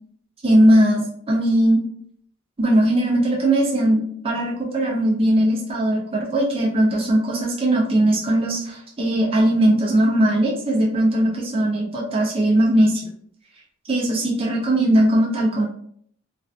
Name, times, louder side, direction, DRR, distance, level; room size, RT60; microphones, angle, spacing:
voice 1, 0.4-1.8 2.6-13.1 13.9-15.7, right 1 dB, 25° right, -3 dB, 0.4 m, -19 dB
2.4 x 2.3 x 2.3 m, 0.63 s
head